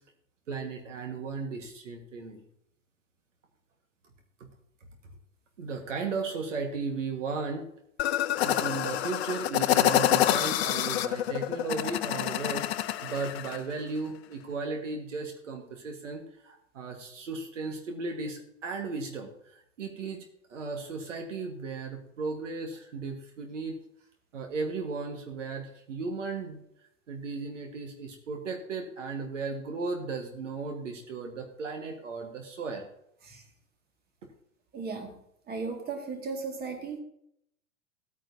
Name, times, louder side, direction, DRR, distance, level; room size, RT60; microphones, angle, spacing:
voice 1, 0.5-2.4 5.6-7.7 8.4-23.8 24.3-26.6 27.1-32.9, right 4 dB, 70° right, 4 dB, 1.7 m, -36 dB
sound 1, 8.0-13.6, left 12 dB, 55° left, 0.7 m, -27 dB
voice 2, 34.7-37.0, right 4 dB, 25° right, 3 dB, 2.2 m, -36 dB
16.0 x 9.1 x 2.8 m, 0.74 s
figure-of-eight pair, 90°, 38 cm